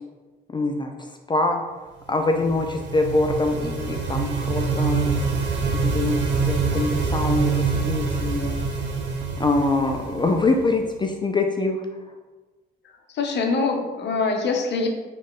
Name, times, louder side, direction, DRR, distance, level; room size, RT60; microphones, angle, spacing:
voice 1, 0.5-0.9 1.3-1.6 2.1-5.2 5.7-6.2 6.5-8.5 9.4-11.8, left 2 dB, 25° left, 3 dB, 0.4 m, -24 dB
sound 1, 2.1-10.9, right 4 dB, 65° right, 0.7 m, -25 dB
voice 2, 13.1-14.9, left 4 dB, 60° left, 3 dB, 0.7 m, -24 dB
4.1 x 3.1 x 3.6 m, 1.2 s
cardioid pair, 90°, 20 cm